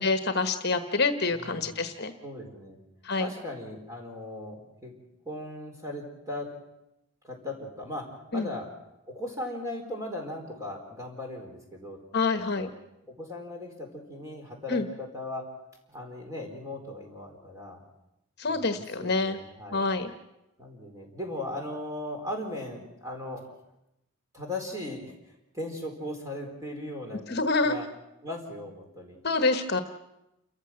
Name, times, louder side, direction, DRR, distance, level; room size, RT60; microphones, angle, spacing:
voice 1, 0.0-2.1 3.0-3.3 8.3-8.5 12.1-12.7 14.7-14.9 18.4-19.4 19.7-20.1 27.3-27.7 29.2-29.8, left 3 dB, 50° left, 9 dB, 1.2 m, -26 dB
voice 2, 1.3-1.7 2.2-2.8 3.2-4.9 5.2-6.5 7.2-8.0 8.3-8.7 9.1-12.0 12.3-12.7 13.2-15.4 15.9-17.8 18.5-19.9 20.6-23.5 24.3-25.1 25.5-27.2 27.6-27.8 28.2-29.2, left 1 dB, 15° right, 1 dB, 4.5 m, -38 dB
28.5 x 15.0 x 7.7 m, 0.89 s
head